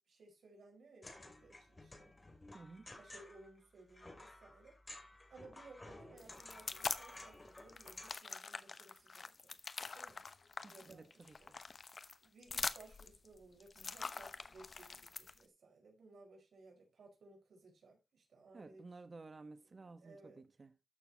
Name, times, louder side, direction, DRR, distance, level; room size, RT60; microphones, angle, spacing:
voice 1, 0.0-2.2 2.9-4.8 5.3-9.6 9.9-10.2 10.7-11.5 12.2-18.9 19.6-20.4, right 3 dB, 80° right, 5.2 m, -60 dB
sound 1, 1.0-8.1, left 2 dB, 20° left, 2.4 m, -55 dB
voice 2, 2.5-2.9 10.6-11.6 18.5-20.7, right 3 dB, 35° right, 1.2 m, -54 dB
sound 2, 6.2-7.2 7.6-15.4, left 4 dB, 40° left, 0.8 m, -44 dB
13.5 x 6.9 x 2.9 m
wide cardioid pair, 165°, 0 cm